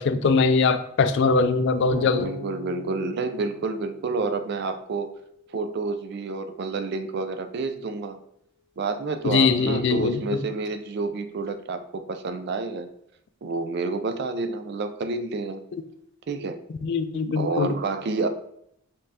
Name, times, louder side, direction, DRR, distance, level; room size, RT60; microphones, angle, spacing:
voice 1, 0.0-2.3 9.2-10.5 15.7-15.8 16.8-17.7, left 4 dB, 55° left, 11 dB, 0.3 m, -22 dB
Bass guitar, 1.9-4.9, equal, 90° right, 1.6 m, -38 dB
voice 2, 2.0-5.1 5.5-8.2 8.8-12.9 13.4-15.6 16.3-16.6 17.4-18.3, right 3 dB, 50° right, 9 dB, 0.3 m, -29 dB
5.3 x 3.3 x 2.8 m, 0.73 s
head